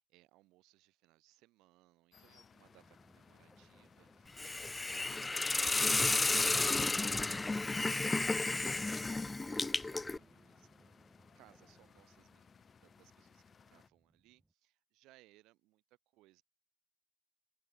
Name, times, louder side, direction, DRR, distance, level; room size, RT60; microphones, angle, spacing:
voice 1, 0.0-6.5 6.8-16.4, right 19 dB, 80° right, 6.4 m, -66 dB
sound 1, 2.1-13.9, left 6 dB, 45° left, 3.8 m, -64 dB
sound 2, 2.6-14.5, right 2 dB, 15° right, 7.5 m, -65 dB
Hiss, 4.4-10.2, left 3 dB, 20° left, 0.3 m, -32 dB
hypercardioid pair, 60°, 0 cm